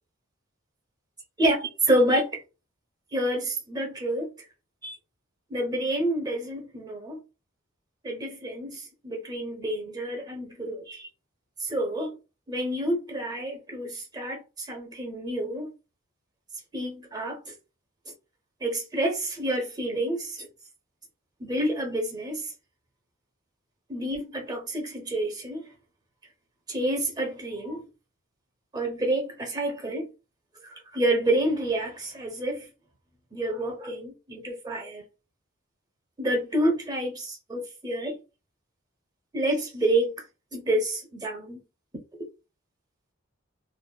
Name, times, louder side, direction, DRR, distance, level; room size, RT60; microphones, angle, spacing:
voice 1, 1.4-2.4 3.1-4.3 4.8-5.0 5.5-7.2 8.0-11.1 11.6-12.1 12.5-15.7 16.7-17.5 18.6-20.5 21.4-22.5 23.9-25.7 26.7-27.9 28.7-30.1 30.6-32.7 33.3-35.0 36.2-38.2 39.3-40.1 40.5-41.6, right 1 dB, 20° right, 0.8 m, -28 dB
2.7 x 2.4 x 2.2 m
head